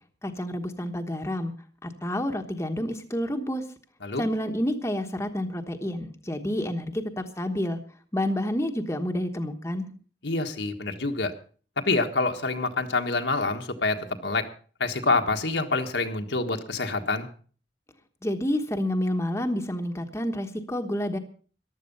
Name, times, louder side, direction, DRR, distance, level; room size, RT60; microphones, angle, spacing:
voice 1, 0.2-1.5 1.8-3.7 4.2-7.8 8.1-9.9 18.2-21.2, left 1 dB, 15° left, 4 dB, 1.2 m, -29 dB
voice 2, 10.2-11.3 11.8-14.4 14.8-17.3, left 3 dB, 70° left, 4 dB, 1.6 m, -26 dB
14.5 x 11.5 x 5.5 m, 0.41 s
head